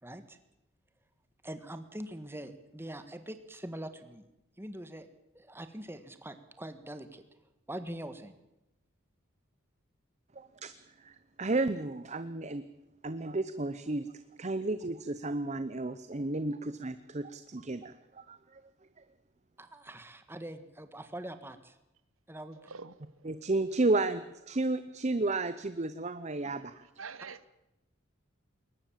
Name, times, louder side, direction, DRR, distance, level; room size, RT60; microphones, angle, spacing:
voice 1, 0.0-0.4 1.4-4.2 4.6-5.1 5.3-7.2 7.7-8.4 19.6-21.8 22.3-22.7, right 1 dB, 10° right, 1.5 m, -43 dB
voice 2, 10.4-10.7 11.0-12.6 13.0-14.1 14.4-18.6 23.2-26.8, right 2 dB, 35° right, 0.7 m, -32 dB
voice 3, 27.0-27.5, right 5 dB, 80° right, 1.0 m, -45 dB
21.5 x 19.0 x 7.4 m
head